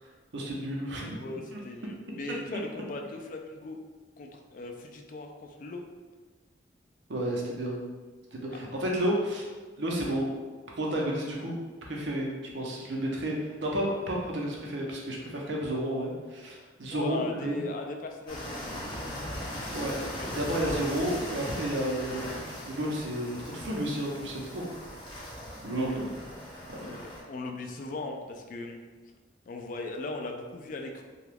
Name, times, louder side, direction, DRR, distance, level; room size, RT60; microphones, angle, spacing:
voice 1, 0.0-1.2 1.5-1.6 7.1-7.8 8.3-9.5 9.8-10.3 10.8-17.6 19.7-22.3 22.7-24.7 25.3-26.0 26.7-26.9, right 1 dB, 85° right, -2 dB, 0.7 m, -32 dB
voice 2, 1.1-3.8 4.2-5.8 16.9-19.3 20.0-20.5 25.7-26.0 26.8-28.8 29.5-31.0, left 3 dB, 45° left, 3 dB, 0.3 m, -39 dB
sound 1, 18.3-27.2, equal, 25° left, 0.7 m, -39 dB
2.9 x 2.3 x 3.4 m, 1.4 s
head